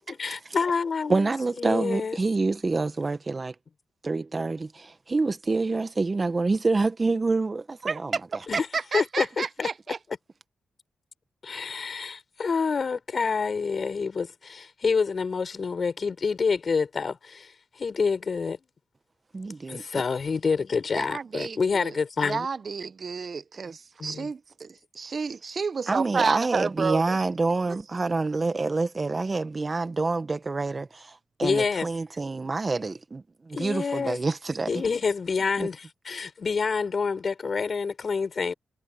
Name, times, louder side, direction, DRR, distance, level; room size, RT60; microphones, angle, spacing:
voice 1, 0.2-2.2 8.5-8.7 8.9-9.7 11.4-18.6 19.7-22.5 24.0-24.3 31.4-31.9 33.5-34.2 34.7-38.5, left 5 dB, 55° left, 4.8 m, -27 dB
voice 2, 1.1-3.5 4.0-8.1 19.3-20.0 25.9-34.7 35.6-35.7, right 3 dB, 40° right, 1.6 m, -27 dB
voice 3, 7.8-10.0 20.9-27.2, right 5 dB, 55° right, 1.1 m, -31 dB
supercardioid pair, 45°, 0 cm